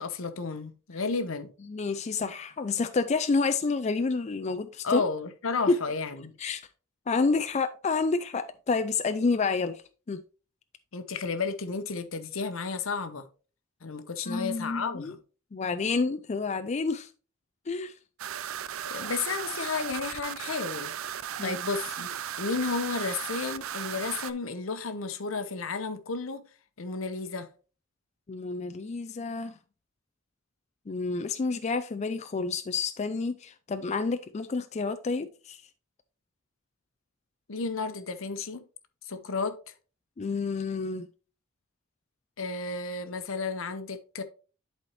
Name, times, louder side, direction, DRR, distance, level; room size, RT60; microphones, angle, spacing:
voice 1, 0.0-1.5 4.8-6.3 10.9-13.3 13.8-15.2 18.9-20.9 21.4-26.5 26.8-27.5 37.5-38.6 39.0-39.6 42.4-44.2, left 4 dB, 80° left, 0.9 m, -32 dB
voice 2, 1.7-5.0 5.7-5.8 6.4-6.6 7.1-9.8 10.1-10.2 14.3-15.1 15.5-17.1 17.7-17.9 21.4-21.6 28.3-29.6 30.9-35.6 40.2-41.1, left 4 dB, 35° left, 0.4 m, -29 dB
sound 1, 18.2-24.3, right 10 dB, 85° right, 0.5 m, -36 dB
11.0 x 4.3 x 3.1 m
head